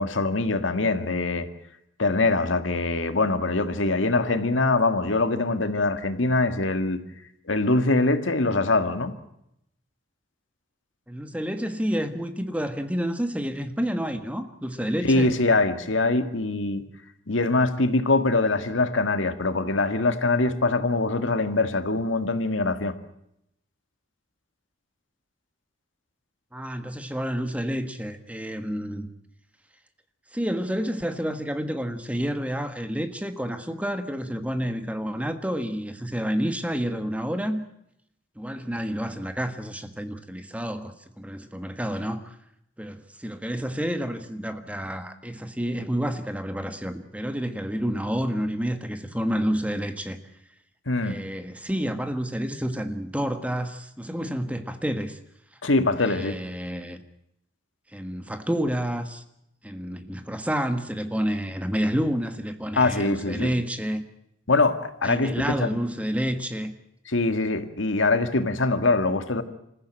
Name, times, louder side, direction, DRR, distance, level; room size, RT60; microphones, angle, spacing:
voice 1, 0.0-1.5 2.0-7.0 7.5-9.1 15.1-16.8 17.3-22.9 50.9-51.2 55.6-56.4 62.8-63.5 64.5-65.7 67.1-69.4, left 3 dB, 85° left, 1.9 m, -23 dB
voice 2, 11.1-15.3 26.5-29.1 30.3-37.6 38.4-42.4 42.8-50.2 51.0-55.2 56.0-57.0 57.9-59.2 59.6-64.0 65.0-66.7, equal, 5° right, 1.4 m, -29 dB
27.0 x 14.5 x 8.9 m
head